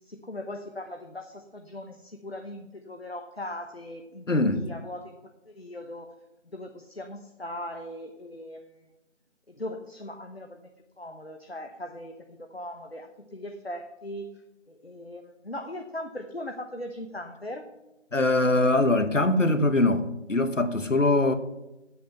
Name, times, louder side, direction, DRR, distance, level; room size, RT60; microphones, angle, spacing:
voice 1, 0.0-4.3 4.6-5.2 5.4-6.2 6.5-8.9 9.5-10.7 11.0-14.4 14.7-17.7, left 1 dB, 55° left, 1.1 m, -39 dB
voice 2, 4.3-4.7 18.1-21.3, left 2 dB, 80° left, 1.3 m, -22 dB
8.4 x 7.6 x 7.7 m
figure-of-eight pair, 175°, 37 cm